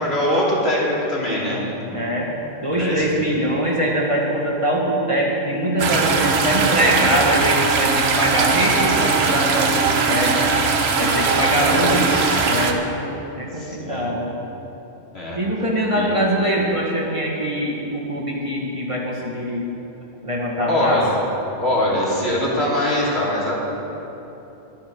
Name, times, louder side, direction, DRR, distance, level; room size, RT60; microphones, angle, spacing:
voice 1, 0.0-1.6 2.7-3.1 11.3-11.8 13.5-14.1 15.1-15.4 15.9-16.1 20.6-21.1 21.6-23.6, left 1 dB, 65° left, -6 dB, 3.1 m, -22 dB
voice 2, 1.9-2.3 2.6-10.7 11.0-14.3 15.3-19.7 20.2-21.0, equal, 30° right, -3 dB, 1.9 m, -22 dB
sound 1, 5.8-12.7, right 4 dB, 65° right, 1.2 m, -20 dB
22.5 x 9.8 x 3.9 m, 3.0 s
omnidirectional pair, 1.2 m